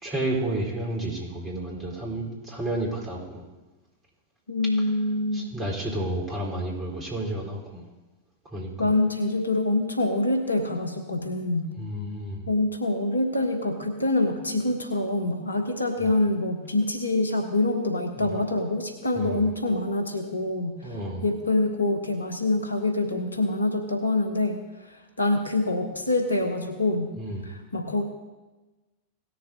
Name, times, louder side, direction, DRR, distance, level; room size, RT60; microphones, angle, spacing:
voice 1, 0.0-3.4 5.3-7.8 8.5-8.9 11.8-12.4 16.0-16.1 18.2-18.3 19.2-19.4 20.8-21.3 27.2-27.5, right 1 dB, 15° right, -2 dB, 4.3 m, -31 dB
voice 2, 4.5-5.5 8.8-11.7 12.5-20.9 21.2-24.6 24.9-27.1 27.4-28.0, left 2 dB, 80° left, 5 dB, 1.2 m, -25 dB
18.0 x 6.8 x 3.9 m, 1.2 s
figure-of-eight pair, 90°, 0 cm